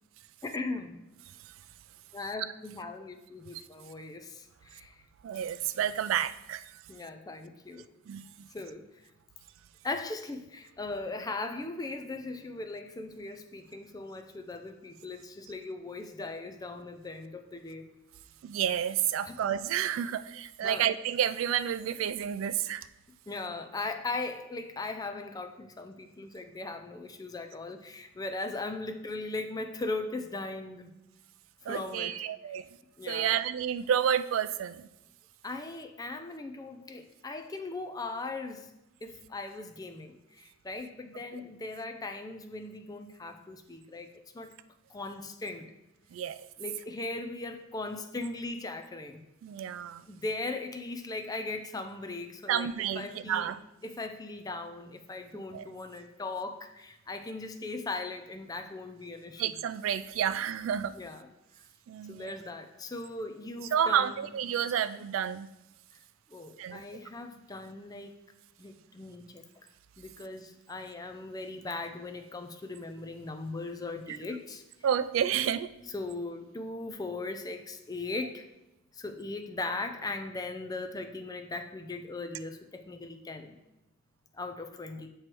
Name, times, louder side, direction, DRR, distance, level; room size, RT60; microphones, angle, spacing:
voice 1, 0.4-1.0 2.1-5.0 6.9-7.9 8.5-8.9 9.8-17.9 19.2-19.4 20.6-20.9 23.3-30.9 31.7-32.2 33.0-33.4 35.4-38.7 39.0-44.1 44.3-44.6 44.9-45.7 46.6-49.2 50.1-52.7 53.0-53.5 53.8-59.6 61.0-61.3 62.1-64.2 66.3-68.1 68.6-69.7 70.0-74.6 75.9-78.5 78.9-83.6 84.3-85.1, left 3 dB, 20° left, 6 dB, 0.4 m, -39 dB
voice 2, 5.2-6.6 8.1-8.2 18.4-22.8 31.7-32.6 33.1-34.8 46.1-46.4 49.4-50.0 52.5-53.6 55.5-55.7 59.4-60.9 61.9-62.3 63.7-65.5 66.6-66.8 74.8-75.7, right 9 dB, 80° right, 14 dB, 0.3 m, -30 dB
7.6 x 3.2 x 4.4 m, 0.92 s
head